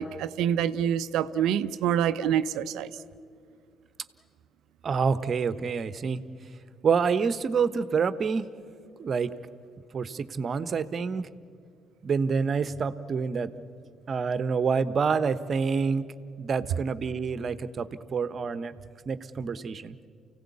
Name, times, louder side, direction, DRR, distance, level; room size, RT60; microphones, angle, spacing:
voice 1, 0.0-2.9, right 9 dB, 70° right, 13 dB, 0.6 m, -26 dB
voice 2, 4.8-6.2 6.8-8.4 9.0-9.3 9.9-11.2 12.0-13.5 14.1-16.1 16.4-18.7 19.1-20.0, right 5 dB, 50° right, 14 dB, 1.0 m, -27 dB
29.0 x 16.5 x 8.4 m, 2.4 s
hypercardioid pair, 45°, 0 cm